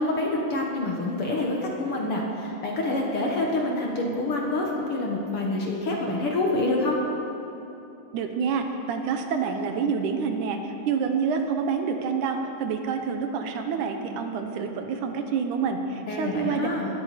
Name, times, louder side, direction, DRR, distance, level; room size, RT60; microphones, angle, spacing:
voice 1, 0.0-7.0 16.1-16.9, left 2 dB, 50° left, -1 dB, 1.9 m, -27 dB
voice 2, 8.1-16.7, right 5 dB, 70° right, 5 dB, 2.3 m, -27 dB
18.5 x 13.5 x 5.1 m, 2.9 s
omnidirectional pair, 4.0 m